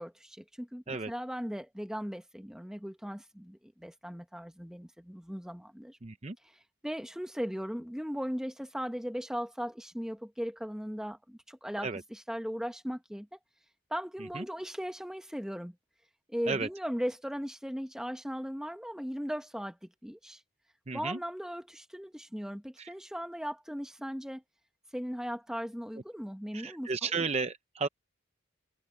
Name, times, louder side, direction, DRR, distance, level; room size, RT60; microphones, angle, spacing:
voice 1, 0.0-6.0 6.4-6.6 6.8-13.3 13.9-15.7 16.3-20.4 20.9-24.4 24.9-27.1, equal, 5° right, 1.5 m, -38 dB
voice 2, 6.0-6.4 11.8-12.0 14.3-14.4 16.5-16.7 20.9-21.2 22.8-22.9 26.5-27.9, right 4 dB, 30° right, 0.7 m, -33 dB
head